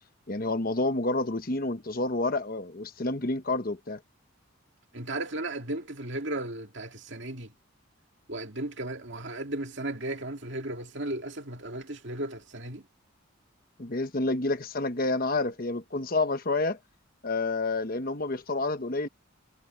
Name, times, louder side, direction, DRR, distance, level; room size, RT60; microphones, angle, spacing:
voice 1, 0.3-4.0 13.8-16.8 17.2-19.1, left 2 dB, 45° left, 1.1 m, -29 dB
voice 2, 4.9-7.5 8.3-12.9, right 1 dB, 60° right, 2.3 m, -35 dB
head